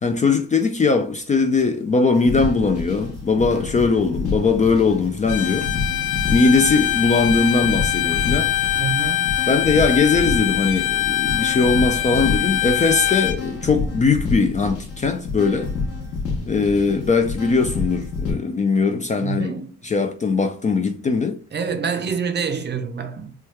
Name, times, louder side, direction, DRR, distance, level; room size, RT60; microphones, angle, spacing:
voice 1, 0.0-5.7 6.3-8.5 9.5-15.7 16.5-19.5 19.8-21.4, left 4 dB, 25° left, 0.3 m, -20 dB
sound 1, 2.1-18.3, left 4 dB, 50° left, 1.0 m, -29 dB
Bowed string instrument, 5.3-13.4, left 14 dB, 85° left, 0.5 m, -23 dB
sound 2, 5.6-13.0, right 2 dB, 85° right, 0.9 m, -41 dB
voice 2, 8.8-9.4 19.2-19.7 21.5-23.3, right 6 dB, 35° right, 0.6 m, -26 dB
3.2 x 2.2 x 3.0 m
cardioid pair, 90°, 30 cm